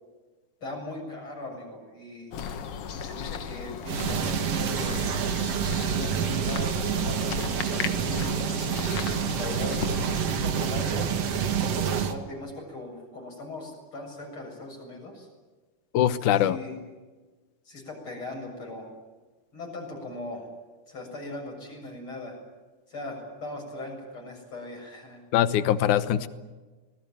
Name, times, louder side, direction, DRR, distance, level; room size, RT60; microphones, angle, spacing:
voice 1, 0.6-2.3 2.9-5.2 5.9-7.4 7.7-8.4 9.4-9.8 10.2-11.1 11.6-15.3 16.4-16.8 17.6-18.9 19.5-20.5 20.9-22.4 22.9-25.2, left 2 dB, 40° left, 2 dB, 8.0 m, -39 dB
sound 1, 2.3-10.3, left 7 dB, 55° left, 2.0 m, -36 dB
sound 2, 3.9-12.1, right 7 dB, 55° right, 2.4 m, -28 dB
voice 2, 15.9-16.6 25.3-26.3, left 11 dB, 80° left, 13 dB, 2.5 m, -22 dB
26.5 x 20.5 x 9.2 m, 1.3 s
omnidirectional pair, 3.5 m